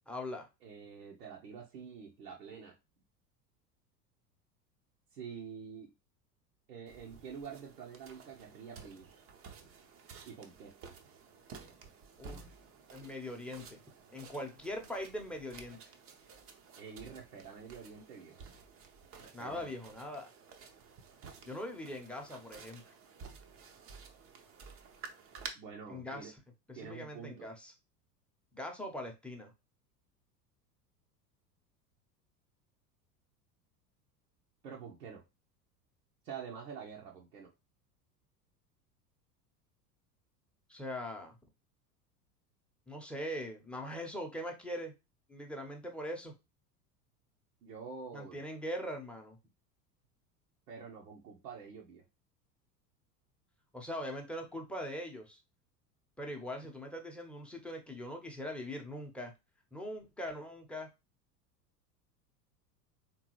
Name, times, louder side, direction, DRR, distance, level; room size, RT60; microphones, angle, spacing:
voice 1, 0.1-0.5 12.2-12.4 12.9-13.8 14.1-15.8 19.3-20.3 21.4-22.9 25.9-26.4 26.7-27.7 28.5-29.5 40.7-41.4 42.9-44.9 45.3-46.3 48.1-49.4 53.7-55.4 56.2-59.3 59.7-60.9, left 1 dB, ahead, 1 dB, 0.8 m, -41 dB
voice 2, 0.6-2.8 5.1-5.9 6.7-9.1 10.2-10.7 16.8-18.4 19.2-19.7 25.5-26.3 26.7-27.5 34.6-35.2 36.2-37.5 47.6-48.4 50.7-52.0, right 6 dB, 70° right, -2 dB, 0.9 m, -47 dB
sound 1, 6.9-25.5, right 5 dB, 30° right, 0.7 m, -53 dB
3.6 x 3.0 x 3.0 m, 0.24 s
figure-of-eight pair, 80°, 49 cm